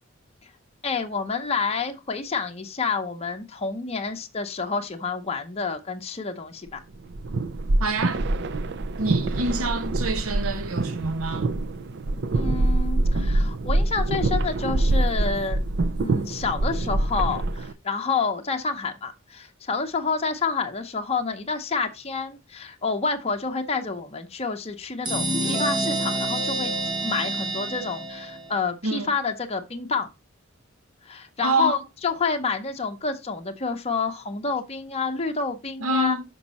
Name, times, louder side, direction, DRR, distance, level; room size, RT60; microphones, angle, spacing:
voice 1, 0.8-6.8 12.3-15.6 16.0-26.7 27.0-30.1 31.0-36.2, left 4 dB, 30° left, 0.7 m, -28 dB
sound 1, 6.9-17.7, right 2 dB, 55° right, 0.5 m, -25 dB
voice 2, 7.8-8.2 9.0-11.5 28.8-29.1 31.4-31.8 35.8-36.2, right 2 dB, 85° right, 0.9 m, -26 dB
sound 2, 25.0-28.6, right 2 dB, 20° right, 1.0 m, -27 dB
5.9 x 5.3 x 4.1 m
head